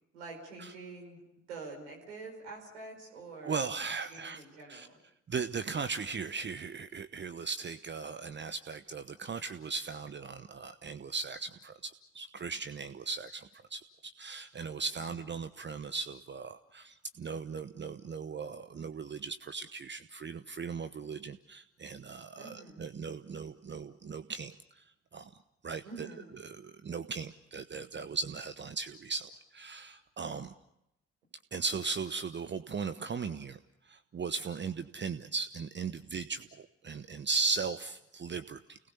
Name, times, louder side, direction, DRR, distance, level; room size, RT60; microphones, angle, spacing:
voice 1, 0.1-1.2 1.5-5.0 14.9-15.2 22.4-22.8 25.8-26.2, right 3 dB, 80° right, 0 dB, 5.0 m, -47 dB
voice 2, 3.4-4.4 4.7-4.9 5.3-25.3 25.6-26.1 26.3-30.5 31.5-33.6 33.8-38.8, right 5 dB, 35° right, 11 dB, 1.0 m, -38 dB
29.5 x 19.5 x 6.9 m, 0.85 s
figure-of-eight pair, 40°, 33 cm